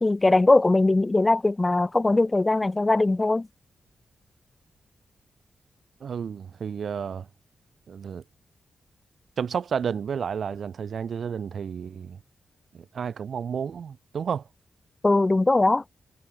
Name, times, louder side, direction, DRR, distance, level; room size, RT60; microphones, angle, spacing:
voice 1, 0.0-3.5 15.0-15.8, left 2 dB, 25° left, 0.6 m, -20 dB
voice 2, 6.0-7.3 7.9-8.2 9.4-12.2 12.7-14.5, right 7 dB, 70° right, 1.3 m, -31 dB
cardioid pair, 90°, 0 cm